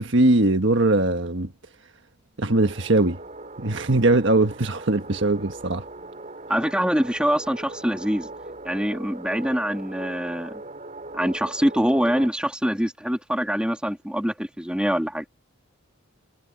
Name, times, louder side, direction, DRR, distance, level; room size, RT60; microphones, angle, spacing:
voice 1, 0.0-1.5 2.4-3.2 3.6-5.8, right 2 dB, 60° right, 1.5 m, -20 dB
sound 1, 2.5-12.3, right 2 dB, 35° right, 5.3 m, -40 dB
voice 2, 6.5-8.3 8.6-10.5 11.1-15.2, equal, 5° right, 3.1 m, -24 dB
head